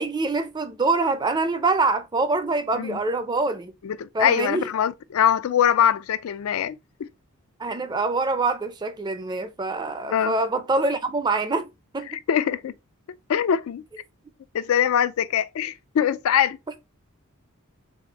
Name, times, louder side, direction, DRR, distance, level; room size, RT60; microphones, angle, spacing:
voice 1, 0.0-3.7 4.1-4.7 7.6-11.7 11.9-12.2, right 3 dB, 20° right, 0.4 m, -25 dB
voice 2, 3.8-7.1 10.1-10.3 12.1-12.7 13.3-13.8 14.5-16.6, left 9 dB, 70° left, 0.3 m, -23 dB
4.2 x 3.4 x 2.8 m
head